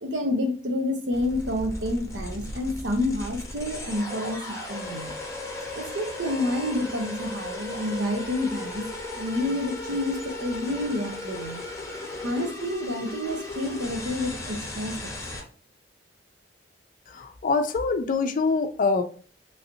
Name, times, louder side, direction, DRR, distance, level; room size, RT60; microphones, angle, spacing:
voice 1, 0.0-5.1 5.7-8.9 9.1-11.6 12.2-15.1, left 1 dB, 85° right, 0.7 m, -29 dB
sound 1, 1.1-15.4, left 2 dB, 15° left, 0.7 m, -36 dB
voice 2, 17.1-19.0, left 4 dB, 50° left, 0.4 m, -24 dB
3.1 x 2.7 x 2.7 m
head